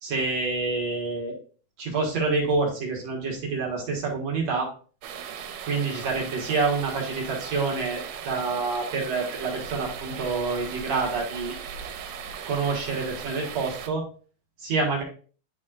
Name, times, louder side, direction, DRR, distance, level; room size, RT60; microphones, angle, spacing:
voice 1, 0.0-1.4 1.8-4.7 5.6-11.6 12.4-14.1 14.6-15.0, right 4 dB, 55° right, -1 dB, 2.3 m, -27 dB
sound 1, 5.0-13.9, right 7 dB, 80° right, 2.7 m, -38 dB
11.0 x 4.2 x 2.5 m, 0.40 s
omnidirectional pair, 4.4 m